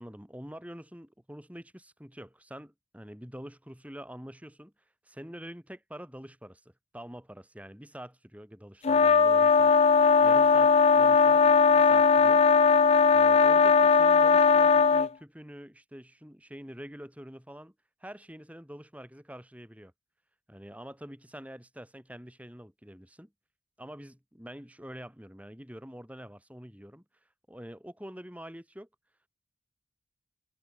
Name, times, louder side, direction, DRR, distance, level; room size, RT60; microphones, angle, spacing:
voice 1, 0.0-4.7 5.0-9.7 10.2-12.4 13.1-17.7 18.0-19.9 20.5-23.3 23.8-27.0 27.5-28.9, equal, 10° right, 7.5 m, -46 dB
sound 1, 8.8-15.1, left 5 dB, 35° left, 0.3 m, -19 dB
head